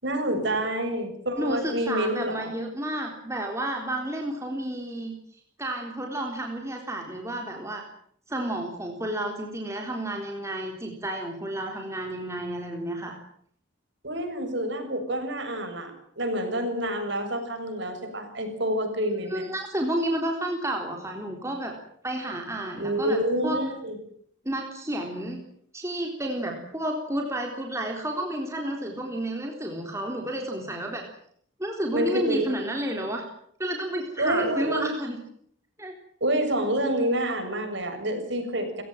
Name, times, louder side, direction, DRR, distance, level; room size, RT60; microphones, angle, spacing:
voice 1, 0.0-2.5 14.0-19.5 22.8-24.0 31.9-32.5 34.2-34.9 36.2-38.8, right 1 dB, 60° right, 6 dB, 6.9 m, -28 dB
voice 2, 1.4-5.1 5.6-7.8 8.3-13.1 19.3-21.7 22.0-23.6 24.4-25.4 25.7-31.1 31.6-33.2 33.6-35.2 35.8-36.0, right 1 dB, 15° right, 2 dB, 3.8 m, -31 dB
29.0 x 17.0 x 9.3 m, 0.65 s
head